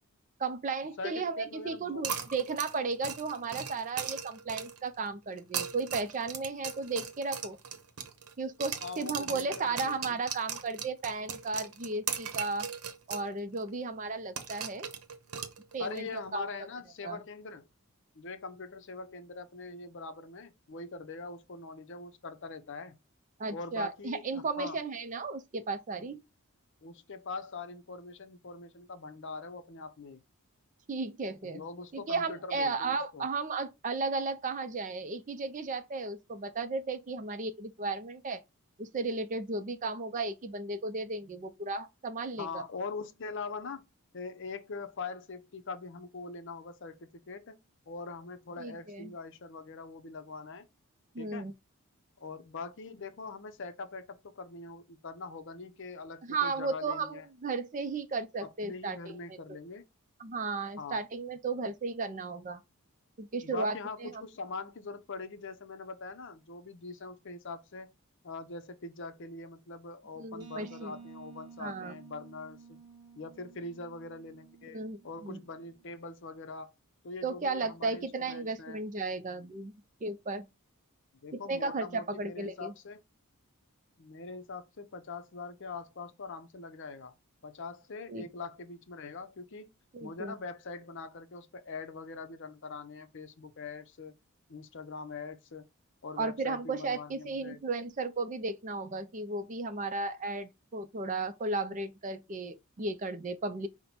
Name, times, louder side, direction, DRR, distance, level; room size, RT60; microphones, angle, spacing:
voice 1, 0.4-7.6 8.4-12.7 13.1-14.9 15.7-16.5 17.0-17.2 23.4-26.2 30.9-31.7 31.9-38.4 38.8-42.6 48.6-49.1 51.1-51.5 56.2-59.2 60.2-62.6 63.2-64.2 70.2-70.9 71.6-72.0 74.7-75.4 77.2-80.5 81.5-82.7 88.1-88.3 89.9-90.3 96.2-103.7, right 3 dB, 35° right, 0.4 m, -35 dB
voice 2, 1.0-2.2 8.8-10.2 15.8-17.7 18.1-23.0 23.5-24.8 26.8-30.2 31.4-33.3 42.4-43.8 44.1-47.6 47.9-50.7 51.2-51.5 52.2-57.3 58.4-59.8 60.8-61.0 63.4-67.9 68.2-72.8 73.2-76.7 77.0-78.8 81.2-83.0 84.0-87.1 87.4-89.7 90.0-94.1 94.5-95.7 96.0-97.6, left 4 dB, 55° left, 0.6 m, -43 dB
sound 1, 2.0-4.9 5.4-8.3 8.6-13.3 13.6-13.7 14.4-16.0, right 7 dB, 75° right, 0.8 m, -38 dB
sound 2, 70.4-76.0, right 5 dB, 20° right, 1.3 m, -53 dB
5.5 x 2.1 x 4.3 m
head